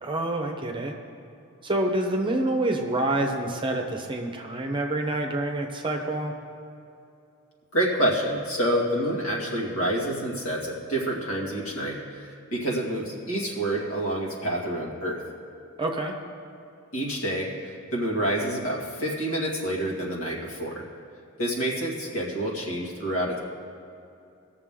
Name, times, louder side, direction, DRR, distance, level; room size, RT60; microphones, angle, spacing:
voice 1, 0.0-1.0 1.6-6.3 15.8-16.1, right 2 dB, 25° right, 2 dB, 1.0 m, -27 dB
voice 2, 7.7-15.2 16.9-17.5 17.9-20.8 21.4-23.4, right 1 dB, 70° left, -2 dB, 2.2 m, -28 dB
19.5 x 6.7 x 3.7 m, 2.6 s
head